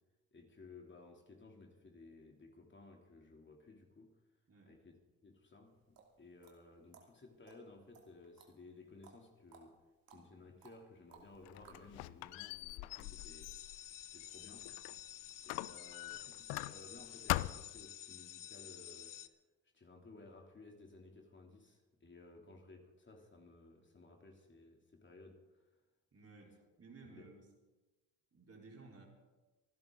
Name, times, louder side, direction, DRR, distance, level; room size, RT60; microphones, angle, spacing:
voice 1, 0.3-4.1 4.6-5.0 5.2-9.8 10.1-13.5 14.1-14.7 15.4-19.3 19.7-25.7 27.0-27.3, left 3 dB, 30° left, 1 dB, 3.1 m, -58 dB
sound 1, 5.7-11.9, right 5 dB, 65° right, 2.8 m, -62 dB
Squeak, 11.2-15.0 15.5-17.0 17.3-17.9, left 19 dB, 85° left, 0.5 m, -42 dB
sound 2, 13.0-19.3, left 11 dB, 55° left, 0.8 m, -51 dB
voice 2, 26.1-27.5 28.3-29.1, right 3 dB, 40° right, 0 dB, 4.0 m, -57 dB
25.5 x 11.0 x 3.9 m, 1.2 s
supercardioid pair, 70°, 37 cm